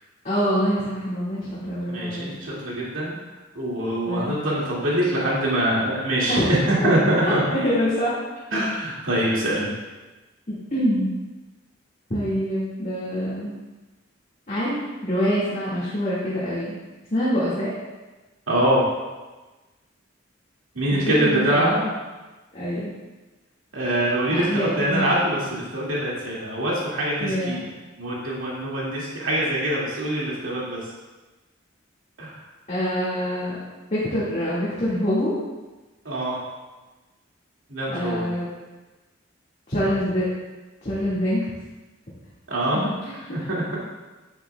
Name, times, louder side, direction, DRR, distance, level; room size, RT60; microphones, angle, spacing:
voice 1, 0.2-2.3 4.1-4.3 6.3-6.5 6.8-6.9 7.2-8.1 8.5-8.6 10.5-11.1 12.1-13.5 14.5-14.8 15.0-16.7 17.1-17.7 20.9-21.8 22.5-22.9 24.3-25.1 27.2-27.7 32.7-33.6 33.9-35.3 37.9-38.5 39.7-40.3 40.8-41.4 42.7-43.5, equal, 40° left, -10 dB, 2.0 m, -25 dB
voice 2, 1.9-3.2 3.6-7.4 8.5-9.7 18.5-18.8 20.7-21.8 23.7-27.6 28.0-30.8 32.2-32.3 36.0-36.4 37.7-38.3 42.5-42.8 43.3-43.6, right 1 dB, 90° right, -6 dB, 2.2 m, -24 dB
9.4 x 9.0 x 2.3 m, 1.2 s
head